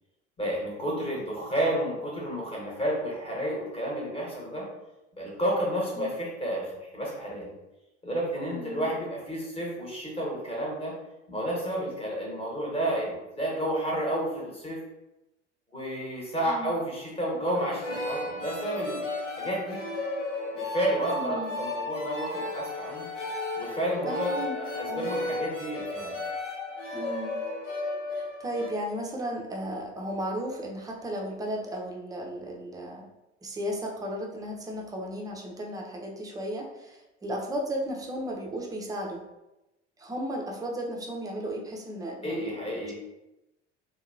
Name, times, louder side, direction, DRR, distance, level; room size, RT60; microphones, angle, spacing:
voice 1, 0.4-4.6 5.2-7.5 8.0-10.9 11.3-14.8 15.7-19.0 19.4-19.8 20.5-23.1 23.6-26.2 42.2-42.9, right 1 dB, 15° left, -4 dB, 1.1 m, -31 dB
voice 2, 8.5-8.9 16.5-16.7 21.2-21.6 24.1-24.5 24.9-25.1 26.9-27.4 28.1-33.0 33.4-39.2 40.0-42.6, equal, 10° right, 0 dB, 0.4 m, -35 dB
sound 1, 17.5-28.7, left 2 dB, 85° left, 0.5 m, -34 dB
2.7 x 2.2 x 2.5 m, 0.96 s
figure-of-eight pair, 60°, 36 cm